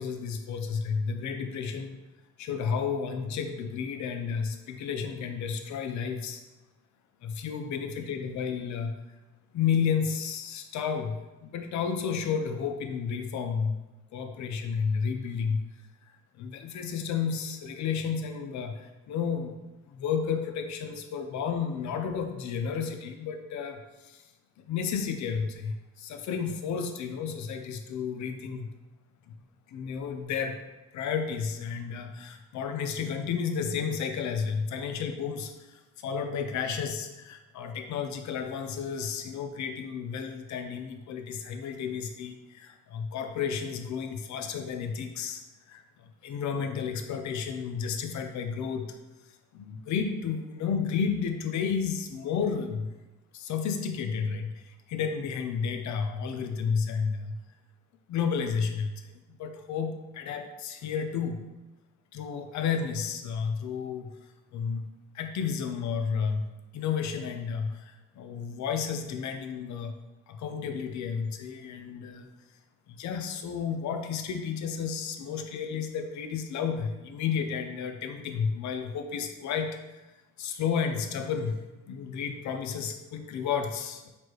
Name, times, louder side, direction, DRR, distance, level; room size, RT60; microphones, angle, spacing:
voice 1, 0.0-2.0 2.4-6.4 7.2-8.9 9.5-11.2 11.4-13.8 14.1-15.6 16.4-19.6 19.9-24.2 24.7-28.7 29.3-29.4 29.7-30.6 30.9-45.4 45.7-49.0 49.5-52.9 53.3-57.4 58.1-59.0 59.4-61.4 62.1-64.1 64.5-64.8 65.1-66.5 66.7-69.9 70.3-72.3 72.9-79.8 80.4-81.6 81.9-84.1, left 6 dB, 70° left, 6 dB, 0.6 m, -32 dB
4.2 x 3.2 x 3.0 m, 1.1 s
cardioid pair, 90°, 30 cm